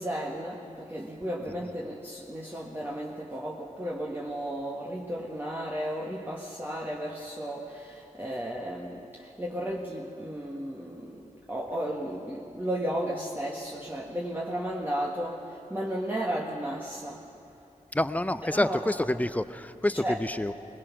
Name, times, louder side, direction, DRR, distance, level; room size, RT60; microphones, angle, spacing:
voice 1, 0.0-17.3 18.4-18.9 19.9-20.2, right 1 dB, 15° right, -3 dB, 1.7 m, -34 dB
voice 2, 17.9-20.5, left 1 dB, 10° left, 12 dB, 0.6 m, -28 dB
22.0 x 20.5 x 6.1 m, 2.7 s
wide cardioid pair, 75°, 14 cm